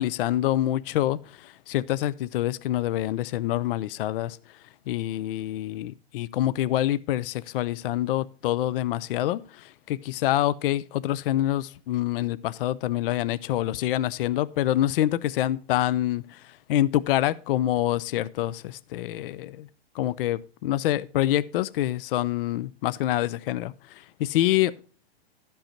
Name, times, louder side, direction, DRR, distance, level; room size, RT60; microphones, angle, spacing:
voice 1, 0.0-4.4 4.9-19.7 20.0-24.7, left 13 dB, 60° left, 0.4 m, -26 dB
12.0 x 5.4 x 4.3 m
hypercardioid pair, 145°, 32 cm